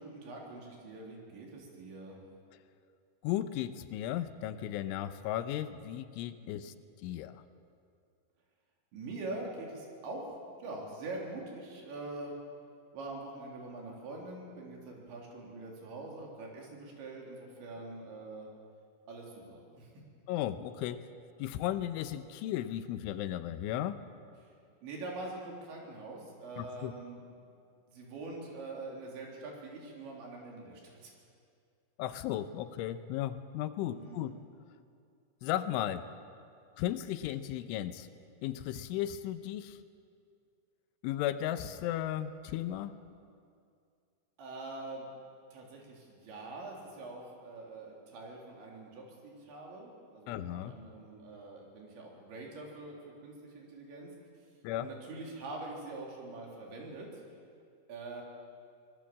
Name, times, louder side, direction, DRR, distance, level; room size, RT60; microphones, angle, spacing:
voice 1, 0.0-2.2 6.4-6.7 8.9-12.4 12.9-18.5 19.1-19.9 24.4-24.5 24.8-27.2 27.9-31.1 33.9-34.4 44.4-45.1 45.5-54.1 54.4-54.5 54.8-57.2 57.9-58.2, right 2 dB, 70° right, -1 dB, 5.7 m, -44 dB
voice 2, 3.2-6.7 7.0-7.4 20.3-21.0 21.4-24.0 26.6-26.9 32.0-34.3 35.4-36.1 36.8-38.1 38.4-39.8 41.0-42.9 50.3-50.7 54.6-54.9, left 12 dB, 85° left, 11 dB, 3.3 m, -35 dB
24.5 x 20.0 x 7.5 m, 2.4 s
omnidirectional pair, 5.4 m